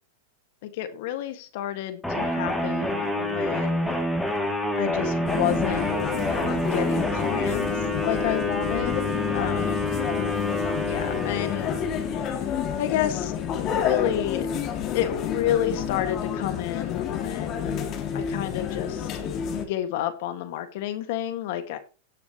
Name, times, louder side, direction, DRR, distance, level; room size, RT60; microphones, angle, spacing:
voice 1, 0.6-4.0 4.8-5.9 6.6-10.0 10.8-11.7 12.2-12.5 12.8-14.5 14.9-17.7 18.1-19.1 19.5-21.8, left 12 dB, 60° left, 9 dB, 1.8 m, -30 dB
sound 1, 2.0-12.3, left 1 dB, 5° left, 2.5 m, -27 dB
sound 2, 5.3-19.7, left 8 dB, 35° left, 2.3 m, -29 dB
18.0 x 7.0 x 3.0 m, 0.32 s
supercardioid pair, 135°, 0 cm